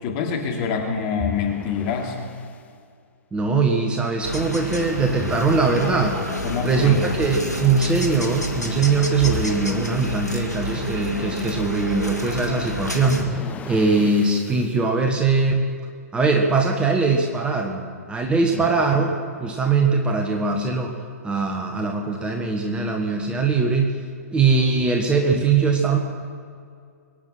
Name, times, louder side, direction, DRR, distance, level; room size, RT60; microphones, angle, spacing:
voice 1, 0.0-2.2 6.4-7.0 18.5-18.6, left 6 dB, 35° left, 1 dB, 2.6 m, -26 dB
sound 1, 1.2-2.6 5.2-6.7 9.2-10.6 13.2-14.8, left 7 dB, 15° left, 0.6 m, -36 dB
voice 2, 3.3-6.2 6.6-15.7 16.1-17.8 18.1-20.9 21.2-24.0 24.3-26.0, right 4 dB, 10° right, 3 dB, 1.3 m, -21 dB
sound 2, 4.2-13.2, left 1 dB, 90° left, 1.9 m, -29 dB
23.0 x 9.5 x 5.8 m, 2.2 s
figure-of-eight pair, 115°, 9 cm